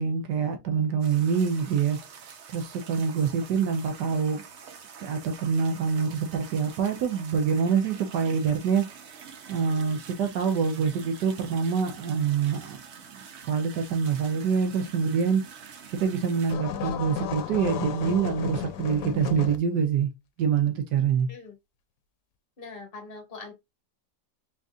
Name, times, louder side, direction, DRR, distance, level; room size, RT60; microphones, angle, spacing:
voice 1, 0.0-2.0 2.5-4.4 5.0-8.8 9.5-12.8 13.1-15.4 15.9-20.1 20.4-21.3, right 6 dB, 80° right, 1.4 m, -26 dB
sound 1, 1.0-16.6, right 6 dB, 55° right, 0.8 m, -46 dB
sound 2, 16.5-19.6, left 8 dB, 75° left, 1.2 m, -33 dB
voice 2, 22.6-23.5, left 4 dB, 35° left, 1.4 m, -42 dB
4.0 x 3.6 x 2.5 m
omnidirectional pair, 1.8 m